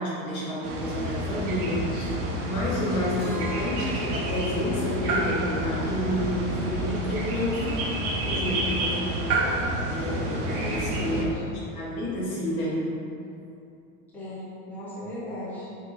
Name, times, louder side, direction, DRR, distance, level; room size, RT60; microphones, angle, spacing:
voice 1, 0.0-2.1 2.5-7.8 8.2-9.4 9.9-11.3 11.7-12.8, left 1 dB, 75° left, -6 dB, 1.3 m, -30 dB
sound 1, 0.6-11.2, right 1 dB, 80° right, 0.8 m, -29 dB
Keyboard (musical), 3.2-7.1, left 2 dB, 35° left, 1.3 m, -43 dB
voice 2, 10.5-11.4 14.1-15.7, equal, 5° left, -10 dB, 0.5 m, -36 dB
4.3 x 2.9 x 2.9 m, 2.7 s
supercardioid pair, 155°, 44 cm